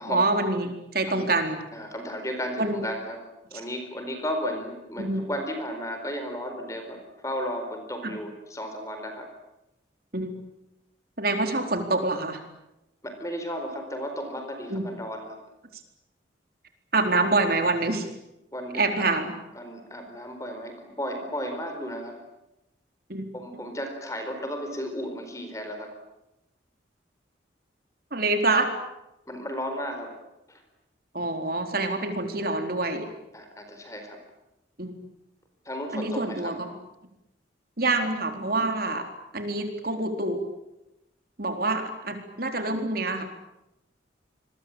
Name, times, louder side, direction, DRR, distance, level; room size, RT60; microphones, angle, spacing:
voice 1, 0.0-1.6 2.6-2.8 5.0-5.2 8.0-8.1 10.1-10.4 11.2-12.4 14.7-14.9 16.9-18.1 18.7-19.3 23.1-23.2 28.1-28.7 31.1-33.1 34.8-34.9 35.9-36.7 37.8-39.0 39.3-40.4 41.4-43.2, right 2 dB, 50° right, 5 dB, 4.1 m, -26 dB
voice 2, 1.7-3.2 3.5-9.3 13.0-15.4 18.5-19.1 19.5-22.2 23.3-25.9 29.3-30.2 30.5-30.6 33.3-34.2 35.6-36.6, equal, 15° left, 6 dB, 4.4 m, -34 dB
28.0 x 22.5 x 8.9 m, 0.91 s
head